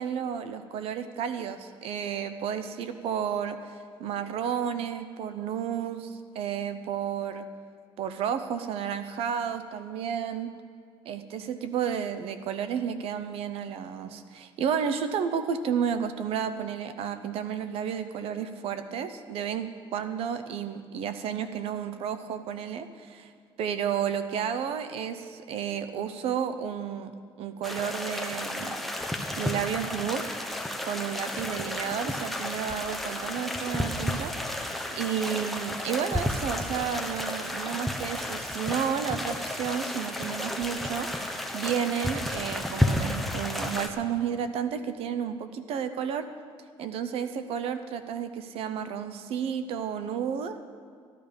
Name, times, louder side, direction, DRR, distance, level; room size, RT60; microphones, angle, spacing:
voice 1, 0.0-3.6 4.0-7.5 8.0-10.5 11.1-23.3 23.6-27.1 27.4-28.8 29.4-30.2 30.8-46.3 46.8-50.6, right 8 dB, 65° right, 10 dB, 0.7 m, -32 dB
sound 1, 27.6-43.9, left 1 dB, ahead, 0.8 m, -32 dB
14.5 x 11.0 x 5.2 m, 2.2 s
cardioid pair, 145°, 11 cm